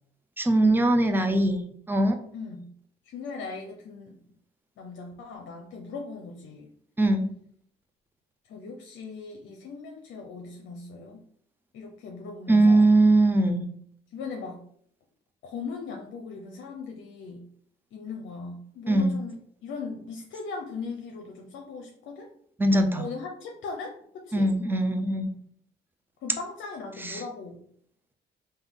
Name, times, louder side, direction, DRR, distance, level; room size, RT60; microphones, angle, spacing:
voice 1, 0.4-2.2 7.0-7.3 12.5-13.6 18.9-19.1 22.6-23.1 24.3-25.3 27.0-27.2, right 2 dB, 10° right, 6 dB, 0.5 m, -21 dB
voice 2, 2.3-2.7 3.1-4.2 4.8-6.7 8.5-11.2 11.7-12.9 14.1-14.6 15.4-17.5 17.9-22.3 22.9-24.5 26.2-27.6, left 4 dB, 75° left, 2 dB, 0.6 m, -39 dB
3.6 x 2.6 x 3.6 m, 0.64 s
cardioid pair, 90°, 20 cm